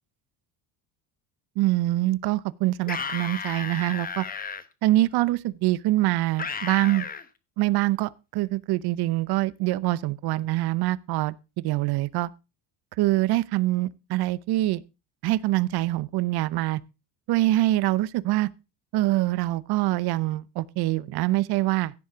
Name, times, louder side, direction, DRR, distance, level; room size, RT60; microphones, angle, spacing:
voice 1, 1.6-4.2 4.8-7.1 7.6-11.4 11.6-12.3 13.0-14.8 15.2-16.8 17.3-18.5 18.9-21.9, right 16 dB, 65° right, 0.8 m, -24 dB
sound 1, 2.8-4.6 6.4-7.2, left 5 dB, 20° left, 1.0 m, -33 dB
16.0 x 7.0 x 5.0 m
cardioid pair, 150°, 42 cm